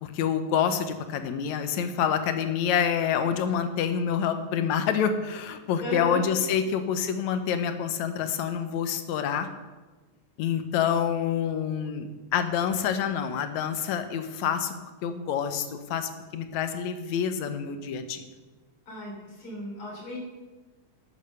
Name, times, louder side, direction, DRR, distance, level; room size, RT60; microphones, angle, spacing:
voice 1, 0.0-9.5 10.4-14.7 15.0-18.2, left 8 dB, 75° left, 8 dB, 2.1 m, -27 dB
voice 2, 5.8-6.2 18.9-20.2, left 1 dB, 45° left, -3 dB, 4.4 m, -35 dB
10.0 x 8.9 x 6.7 m, 1.2 s
omnidirectional pair, 3.4 m